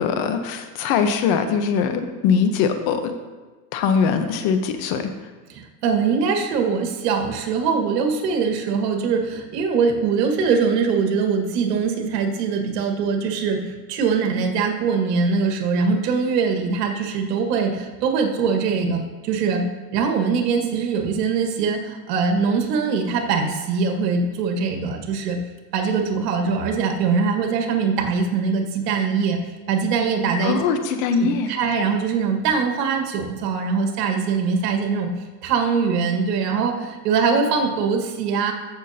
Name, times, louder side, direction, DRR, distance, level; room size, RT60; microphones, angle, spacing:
voice 1, 0.0-3.1 3.7-5.1 30.4-31.5, left 6 dB, 50° left, 8 dB, 1.0 m, -21 dB
voice 2, 5.5-19.6 19.9-25.4 25.7-29.4 29.7-30.8 31.2-35.1 35.4-38.5, right 5 dB, 75° right, 3 dB, 1.7 m, -22 dB
14.5 x 6.0 x 2.8 m, 1.3 s
supercardioid pair, 120°, 48 cm